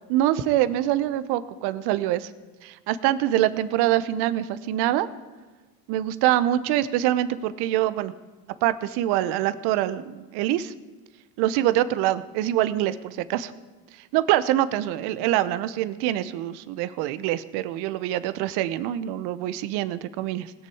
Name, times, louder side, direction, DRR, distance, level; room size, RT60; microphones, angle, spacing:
voice 1, 0.1-2.3 2.6-5.1 5.9-8.1 8.6-10.7 11.4-13.5 14.1-20.5, right 13 dB, 55° right, 14 dB, 0.9 m, -24 dB
20.5 x 6.8 x 4.8 m, 1.3 s
hypercardioid pair, 90°, 48 cm